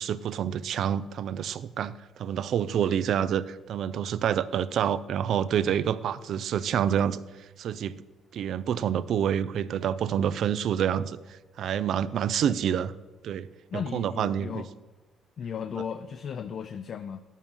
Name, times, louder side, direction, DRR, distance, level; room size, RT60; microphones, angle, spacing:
voice 1, 0.0-7.9 8.3-12.9 13.2-13.5 13.7-14.6, right 9 dB, 65° right, 16 dB, 0.4 m, -28 dB
voice 2, 13.7-14.7 15.4-17.2, left 7 dB, 55° left, 9 dB, 0.4 m, -35 dB
9.0 x 7.2 x 5.4 m, 1.2 s
cardioid pair, 90°, 0 cm